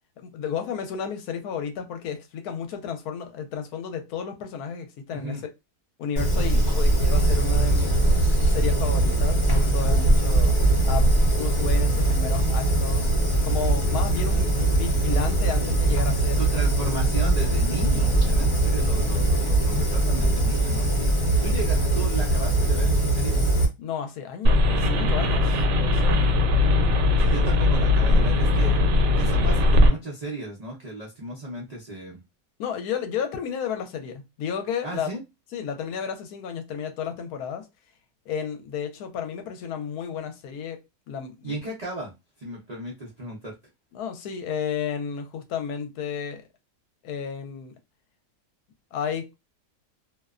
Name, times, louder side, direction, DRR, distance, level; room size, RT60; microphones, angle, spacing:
voice 1, 0.2-5.4 6.0-8.0 8.5-10.5 10.8-11.1 11.4-13.2 13.4-16.4 18.7-18.9 23.8-26.3 32.6-35.1 35.5-37.7 38.3-40.8 41.1-41.6 43.9-46.4 47.0-47.7 48.9-49.3, left 7 dB, 75° left, 1.0 m, -32 dB
voice 2, 5.1-5.4 6.5-6.6 14.1-14.2 16.4-23.4 27.2-28.8 29.2-32.2 34.8-35.2 41.4-42.1 42.4-43.5, right 2 dB, 80° right, 0.3 m, -35 dB
Fire, 6.2-23.7, right 2 dB, 30° left, 0.6 m, -21 dB
sound 1, 24.5-29.9, left 2 dB, 65° right, 1.0 m, -19 dB
2.7 x 2.1 x 2.3 m
omnidirectional pair, 1.7 m